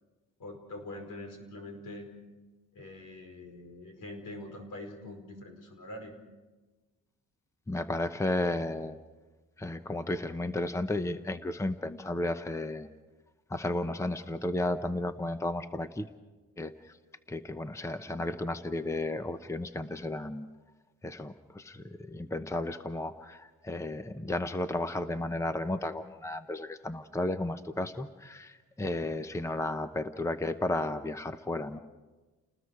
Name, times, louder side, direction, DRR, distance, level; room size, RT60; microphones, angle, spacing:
voice 1, 0.4-2.1 2.7-6.1, left 1 dB, 80° left, 4 dB, 5.0 m, -44 dB
voice 2, 7.7-9.0 9.6-12.9 13.5-16.1 16.6-16.7 17.3-20.5 21.0-31.8, left 2 dB, 10° left, 10 dB, 0.8 m, -33 dB
30.0 x 20.0 x 4.8 m, 1.2 s
cardioid pair, 115°, 32 cm